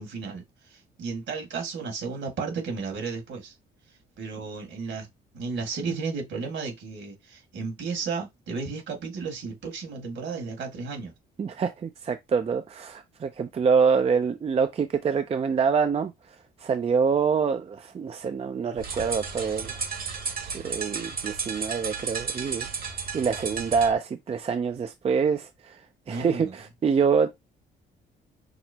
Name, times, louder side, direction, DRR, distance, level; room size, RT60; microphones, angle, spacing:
voice 1, 0.0-3.5 4.2-5.1 5.3-11.1 26.1-26.5, right 4 dB, 65° right, 1.8 m, -33 dB
voice 2, 11.4-16.1 16.6-19.8 20.5-25.8 26.1-27.3, right 6 dB, 30° right, 0.4 m, -26 dB
sound 1, 18.8-23.9, right 5 dB, 45° right, 1.1 m, -33 dB
5.9 x 2.0 x 2.7 m
cardioid pair, 90°, 20 cm